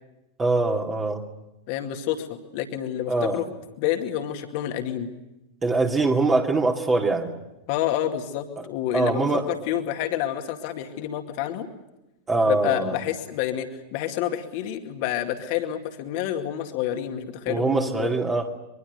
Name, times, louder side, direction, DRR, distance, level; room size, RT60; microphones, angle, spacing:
voice 1, 0.4-1.2 3.1-3.4 5.6-7.3 8.9-9.5 12.3-13.0 17.5-18.5, right 3 dB, 20° right, 1 dB, 2.5 m, -23 dB
voice 2, 1.7-3.5 3.8-5.1 7.7-11.7 12.5-18.1, left 11 dB, 45° left, 5 dB, 2.3 m, -28 dB
24.0 x 23.5 x 8.2 m, 0.97 s
figure-of-eight pair, 90°, 0 cm